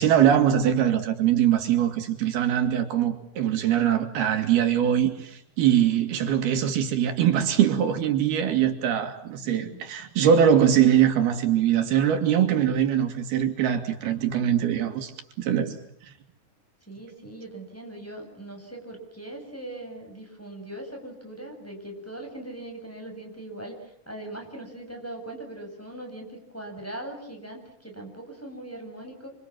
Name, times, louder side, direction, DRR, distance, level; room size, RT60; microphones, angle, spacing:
voice 1, 0.0-15.7, right 9 dB, 80° right, 4.1 m, -22 dB
voice 2, 9.4-9.8 16.9-29.3, right 1 dB, 5° left, 7.6 m, -40 dB
28.0 x 27.0 x 7.5 m
omnidirectional pair, 4.4 m